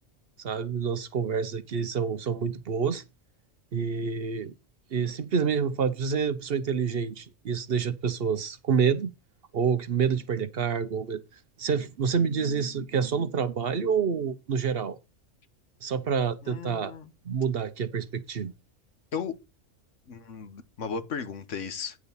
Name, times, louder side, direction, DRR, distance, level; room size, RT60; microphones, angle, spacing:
voice 1, 0.4-3.0 3.7-4.5 4.9-9.1 9.5-11.2 11.6-15.0 15.8-16.9 17.2-18.5, right 6 dB, 55° right, 0.9 m, -28 dB
voice 2, 16.4-17.1 19.1-19.3 20.1-22.0, left 6 dB, 75° left, 1.4 m, -35 dB
9.6 x 4.0 x 7.0 m
omnidirectional pair, 1.3 m